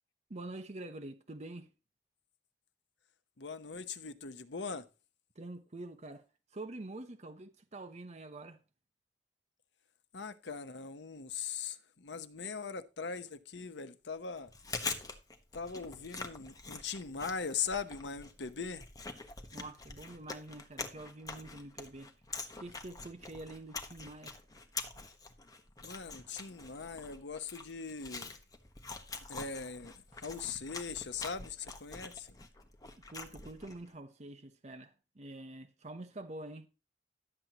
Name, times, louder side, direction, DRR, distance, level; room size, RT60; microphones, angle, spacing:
voice 1, 0.3-1.7 5.3-6.3 6.5-8.6 19.5-22.1 22.6-24.4 33.1-36.7, right 2 dB, 40° right, 0.9 m, -46 dB
voice 2, 3.4-4.9 10.1-14.5 15.5-18.8 25.8-28.3 29.3-32.3, left 5 dB, 85° left, 0.9 m, -40 dB
Chewing mastication, 14.4-33.9, left 3 dB, 20° left, 1.3 m, -45 dB
12.0 x 8.1 x 2.9 m
head